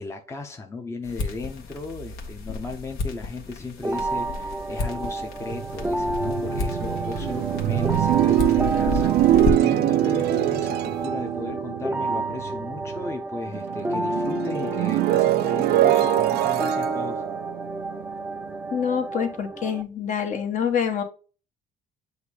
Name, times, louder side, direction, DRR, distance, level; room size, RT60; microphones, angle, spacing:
voice 1, 0.0-17.2, left 3 dB, 15° left, 0.8 m, -36 dB
sound 1, 1.0-9.9, left 4 dB, 75° left, 1.5 m, -32 dB
sound 2, 3.8-19.8, right 2 dB, 10° right, 0.4 m, -30 dB
sound 3, 5.4-13.1 13.5-18.6, right 14 dB, 70° right, 0.4 m, -24 dB
voice 2, 18.7-21.0, left 7 dB, 50° left, 1.4 m, -26 dB
7.9 x 2.8 x 4.9 m
cardioid pair, 110°, 17 cm